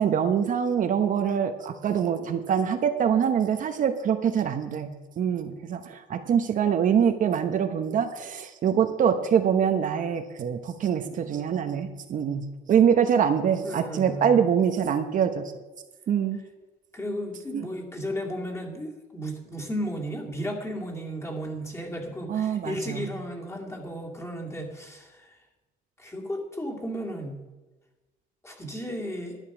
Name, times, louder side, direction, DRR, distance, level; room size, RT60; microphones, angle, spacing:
voice 1, 0.0-15.5 16.1-16.4 17.5-17.6 22.3-23.1, right 8 dB, 50° right, 7 dB, 0.9 m, -24 dB
voice 2, 13.6-14.4 16.9-25.3 26.0-27.4 28.4-29.4, equal, 15° left, 0 dB, 2.6 m, -34 dB
12.0 x 9.1 x 6.1 m, 1.2 s
cardioid pair, 110°, 17 cm